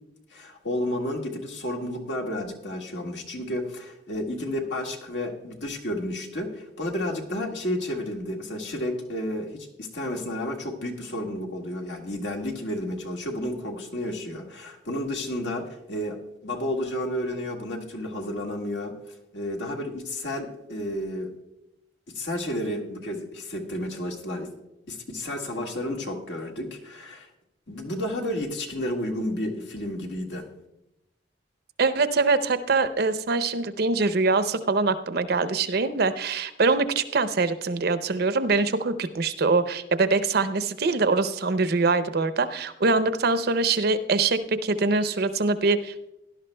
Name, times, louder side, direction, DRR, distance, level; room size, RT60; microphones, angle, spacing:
voice 1, 0.3-18.9 19.3-21.3 22.1-24.5 24.9-27.3 27.7-30.5, left 1 dB, 80° left, 1 dB, 1.6 m, -31 dB
voice 2, 31.8-46.1, right 3 dB, 60° right, 13 dB, 0.6 m, -23 dB
17.0 x 11.0 x 2.2 m, 0.90 s
head